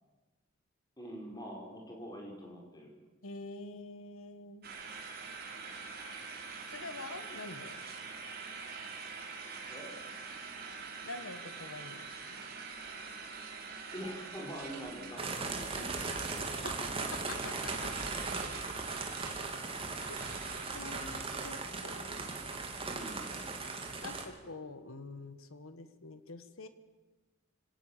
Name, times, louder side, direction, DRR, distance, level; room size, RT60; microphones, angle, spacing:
voice 1, 1.0-2.9 9.7-9.9 13.9-16.8 22.8-23.3, equal, 20° left, 0 dB, 5.0 m, -45 dB
voice 2, 3.2-4.7 6.7-7.8 11.0-12.4 16.6-16.8 17.3-17.9 20.7-22.2 24.0-26.7, left 3 dB, 85° left, 11 dB, 1.5 m, -46 dB
sound 1, 4.6-21.2, right 5 dB, 45° right, 3.6 m, -45 dB
sound 2, 15.2-24.2, right 3 dB, 25° right, 2.5 m, -38 dB
25.5 x 18.0 x 7.4 m, 1.2 s
head